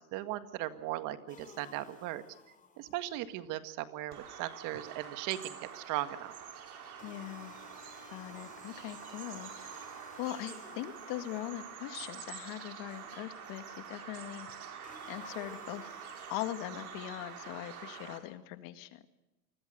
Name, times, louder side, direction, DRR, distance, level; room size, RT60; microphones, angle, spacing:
voice 1, 0.0-2.2 2.8-6.3, right 14 dB, 45° right, 12 dB, 1.8 m, -38 dB
sound 1, 1.3-3.2 7.0-12.3 14.8-17.2, left 4 dB, 15° left, 4.3 m, -56 dB
Bird vocalization bird call bird song, 4.1-18.2, right 7 dB, 80° right, 5.4 m, -47 dB
voice 2, 7.0-7.6 8.1-9.7 10.2-14.5 15.1-15.9 16.3-19.0, left 15 dB, 45° left, 12 dB, 1.9 m, -41 dB
27.5 x 21.0 x 6.7 m, 0.95 s
hypercardioid pair, 120°, 44 cm